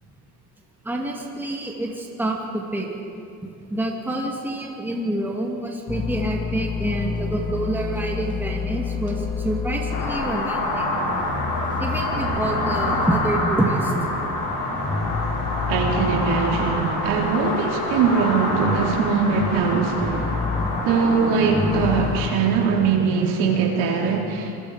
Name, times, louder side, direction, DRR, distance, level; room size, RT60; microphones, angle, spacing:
voice 1, 0.8-2.9 3.7-10.9 11.8-13.9 18.5-18.6, right 1 dB, 5° right, -1 dB, 2.4 m, -27 dB
sound 1, 5.9-12.6 12.8-13.8 14.2-17.4 17.7-22.3, left 4 dB, 10° left, 1.0 m, -29 dB
sound 2, 9.9-22.3, left 2 dB, 85° left, 6.9 m, -26 dB
voice 2, 15.7-20.4 20.8-24.5, right 5 dB, 80° right, -1 dB, 4.3 m, -21 dB
27.5 x 22.0 x 5.2 m, 2.6 s
cardioid pair, 155°, 39 cm